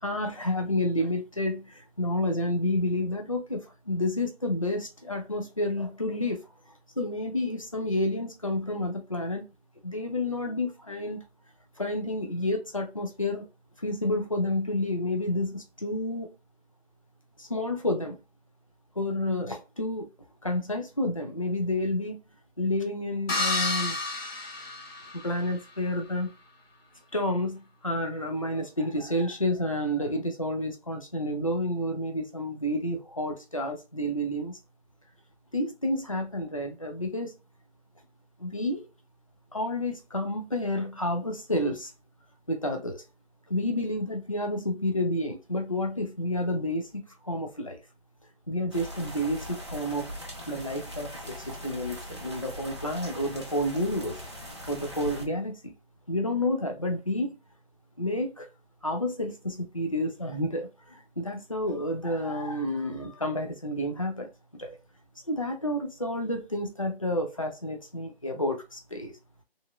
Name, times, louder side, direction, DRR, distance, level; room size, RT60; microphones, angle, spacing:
voice 1, 0.0-6.4 7.0-9.4 9.8-11.2 11.8-13.5 13.8-16.3 17.4-18.2 19.0-20.1 20.4-22.2 22.6-24.0 25.2-26.3 27.1-34.6 35.5-37.3 38.4-38.9 39.5-41.9 42.5-43.0 43.5-47.8 48.5-50.1 50.5-54.2 54.7-55.7 56.1-57.4 58.0-58.5 58.8-64.3 64.6-64.8 65.3-69.1, left 1 dB, 35° left, 0.4 m, -30 dB
sound 1, 23.3-25.5, left 2 dB, 65° left, 1.0 m, -30 dB
sound 2, 48.7-55.3, equal, 30° right, 0.4 m, -40 dB
3.0 x 2.6 x 2.3 m
figure-of-eight pair, 165°, 31 cm